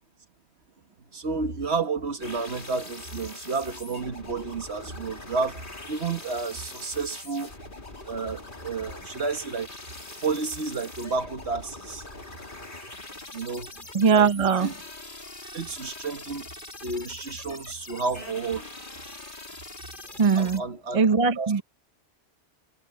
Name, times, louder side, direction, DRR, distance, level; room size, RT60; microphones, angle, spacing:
voice 1, 1.1-7.5 8.1-9.7 10.2-12.1 13.3-13.7 14.1-14.8 15.5-16.5 16.8-18.7 20.4-21.0 21.4-21.6, right 4 dB, 65° right, 1.8 m, -31 dB
sound 1, 2.2-20.6, left 2 dB, 45° left, 3.1 m, -43 dB
voice 2, 13.9-14.7 20.2-20.6 20.9-21.6, right 5 dB, 35° right, 0.8 m, -20 dB
omnidirectional pair, 1.2 m